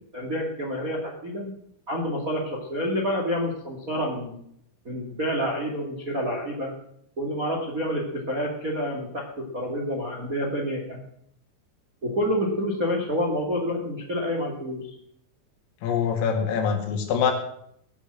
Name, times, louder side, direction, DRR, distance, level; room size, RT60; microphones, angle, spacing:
voice 1, 0.1-1.5 1.9-2.4 2.7-4.4 4.8-6.7 7.2-8.0 8.3-9.3 9.5-11.0 12.0-14.9, equal, 60° right, -1 dB, 0.8 m, -28 dB
voice 2, 15.8-17.3, left 7 dB, 80° left, 4 dB, 4.6 m, -24 dB
19.0 x 6.8 x 7.5 m, 0.72 s
omnidirectional pair, 5.9 m